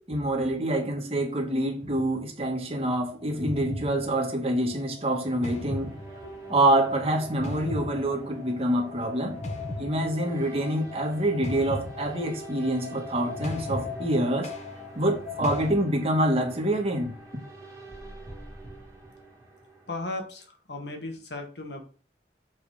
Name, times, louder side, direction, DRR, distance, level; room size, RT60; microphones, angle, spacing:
voice 1, 0.1-5.9 6.5-9.4 9.8-14.5 14.9-17.1, right 1 dB, 35° right, 1.6 m, -26 dB
sound 1, 1.8-2.2 3.2-15.7, left 2 dB, 40° left, 1.1 m, -38 dB
sound 2, 5.2-19.9, right 2 dB, 15° right, 2.1 m, -46 dB
voice 2, 19.9-21.8, left 2 dB, 80° left, 1.7 m, -36 dB
7.2 x 4.2 x 4.9 m
head